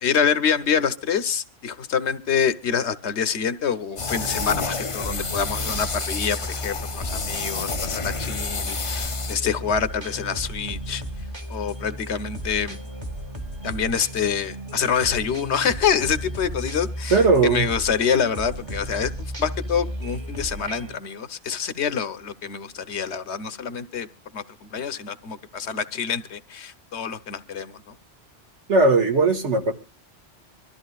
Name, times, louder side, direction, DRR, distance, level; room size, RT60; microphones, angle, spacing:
voice 1, 0.0-11.0 11.5-12.8 13.6-24.1 24.3-28.0, left 7 dB, 70° left, 1.2 m, -26 dB
sound 1, 4.0-9.4, left 5 dB, 35° left, 0.7 m, -30 dB
sound 2, 4.0-20.9, equal, 25° right, 1.5 m, -34 dB
voice 2, 17.1-17.7 28.7-29.7, right 3 dB, 80° right, 2.2 m, -18 dB
24.5 x 13.5 x 2.3 m
omnidirectional pair, 1.2 m